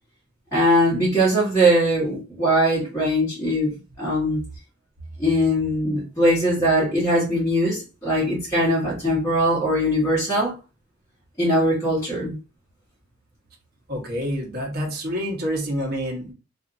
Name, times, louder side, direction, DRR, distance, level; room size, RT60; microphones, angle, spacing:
voice 1, 0.5-4.4 5.2-10.5 11.4-12.3, equal, 15° left, 1.2 m, -21 dB
voice 2, 13.9-16.3, equal, 50° right, 1.0 m, -27 dB
2.6 x 2.5 x 2.5 m
head